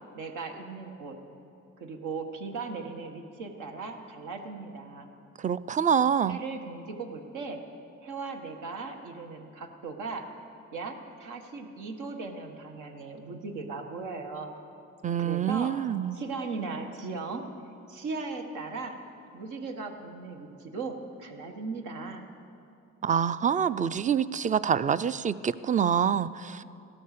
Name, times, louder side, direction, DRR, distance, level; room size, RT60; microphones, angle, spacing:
voice 1, 0.1-1.2 1.8-5.1 6.3-7.6 8.0-10.3 10.7-14.5 15.2-15.8 16.1-17.5 17.9-19.0 19.3-22.2, right 4 dB, 85° right, 3 dB, 1.6 m, -38 dB
voice 2, 5.4-6.4 15.0-16.1 23.0-26.6, right 8 dB, 25° right, 16 dB, 0.4 m, -26 dB
16.0 x 12.5 x 6.7 m, 2.6 s
cardioid pair, 90°, 30 cm